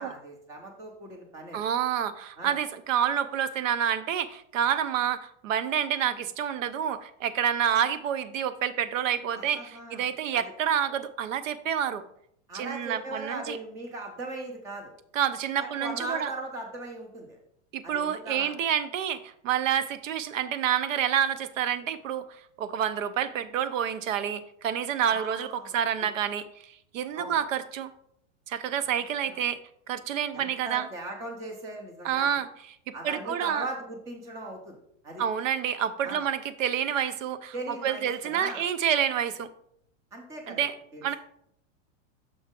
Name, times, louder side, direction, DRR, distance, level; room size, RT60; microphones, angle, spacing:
voice 1, 0.0-1.6 2.4-2.6 9.3-10.5 12.5-14.9 15.6-17.4 17.8-18.5 25.1-26.1 27.1-27.4 28.8-28.9 29.2-29.4 30.3-32.4 32.9-34.8 35.0-35.2 36.0-36.2 37.5-38.6 40.1-40.7 40.9-41.1, right 2 dB, 10° right, 2 dB, 0.4 m, -39 dB
voice 2, 1.5-12.0 12.5-13.6 15.1-16.3 17.7-22.2 22.6-27.9 28.5-29.6 29.9-30.9 32.0-32.8 33.0-33.7 35.2-39.5 40.5-40.7 41.0-41.2, right 9 dB, 85° right, 12 dB, 0.7 m, -28 dB
6.2 x 4.8 x 3.6 m, 0.70 s
supercardioid pair, 170°, 37 cm